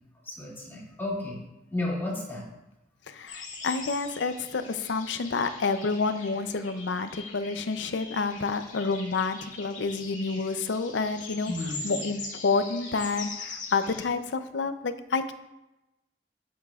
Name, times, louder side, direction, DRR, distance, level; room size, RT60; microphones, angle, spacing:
voice 1, 0.3-1.4 1.7-2.4 11.5-11.9, left 2 dB, 15° left, -5 dB, 2.3 m, -32 dB
voice 2, 3.1-11.5 11.8-15.3, left 4 dB, 80° left, 10 dB, 0.5 m, -29 dB
sound 1, 3.3-14.0, left 3 dB, 45° left, 1.9 m, -42 dB
9.6 x 8.3 x 2.4 m, 0.97 s
head